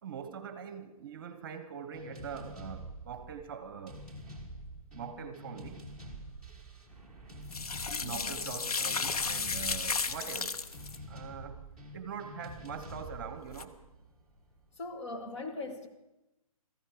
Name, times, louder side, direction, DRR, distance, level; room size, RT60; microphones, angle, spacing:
voice 1, 0.0-4.1 4.9-5.8 8.0-10.6 11.1-11.6 11.9-13.8, right 7 dB, 35° right, 1.1 m, -43 dB
sound 1, 1.9-14.7, right 1 dB, 5° left, 1.5 m, -47 dB
sound 2, 7.5-11.0 13.5-13.6, left 4 dB, 90° left, 1.0 m, -34 dB
voice 2, 8.0-8.4 14.8-15.9, left 2 dB, 50° left, 2.1 m, -40 dB
17.0 x 14.5 x 5.0 m
hypercardioid pair, 160°, 19 cm